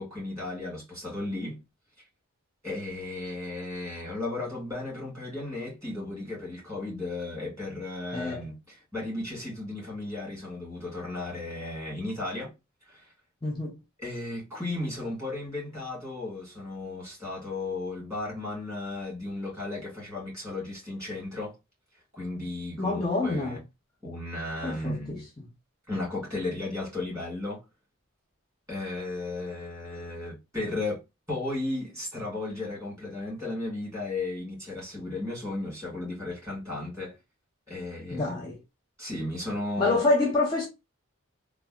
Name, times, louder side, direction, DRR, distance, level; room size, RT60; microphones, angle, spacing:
voice 1, 0.0-1.6 2.6-12.5 12.9-13.1 14.0-21.6 22.1-23.6 24.0-25.2 25.9-27.6 28.7-31.0 31.3-37.2 37.7-38.3 39.0-40.1, left 2 dB, 15° right, 1.8 m, -35 dB
voice 2, 8.1-8.4 13.4-13.8 22.8-23.6 24.6-25.0 25.4-25.5 38.1-38.6 39.8-40.7, left 2 dB, 20° left, 0.5 m, -26 dB
3.3 x 2.2 x 2.2 m
head